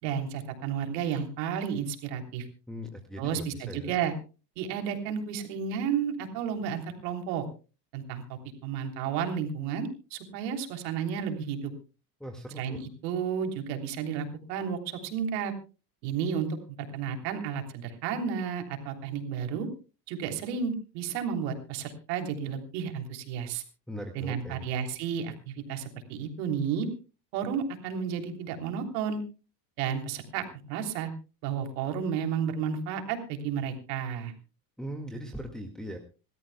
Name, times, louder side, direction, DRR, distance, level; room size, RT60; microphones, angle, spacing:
voice 1, 0.0-2.5 3.2-4.1 4.6-7.4 7.9-11.7 12.5-15.5 16.0-16.5 16.9-19.7 20.1-23.6 24.1-26.9 27.3-29.2 29.8-31.1 31.4-34.3, right 7 dB, 80° right, 4 dB, 3.4 m, -32 dB
voice 2, 2.7-3.9 12.2-12.6 23.9-24.6 34.8-36.0, equal, ahead, 1 dB, 1.9 m, -39 dB
27.0 x 13.5 x 2.2 m, 0.34 s
supercardioid pair, 110°, 50 cm